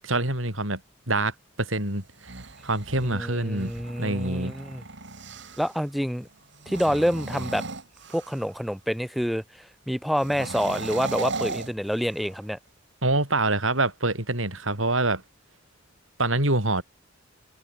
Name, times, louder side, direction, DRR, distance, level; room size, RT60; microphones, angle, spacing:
voice 1, 0.1-0.8 1.1-2.3 2.6-3.7 4.0-4.5 13.0-15.2 16.2-16.8, right 2 dB, 80° right, 7.6 m, -25 dB
sound 1, 2.0-5.8 6.5-8.6 10.1-12.4, right 3 dB, 65° right, 3.6 m, -36 dB
voice 2, 3.0-4.8 5.6-6.3 6.7-7.6 8.1-9.4 9.9-12.6, equal, ahead, 4.1 m, -27 dB
head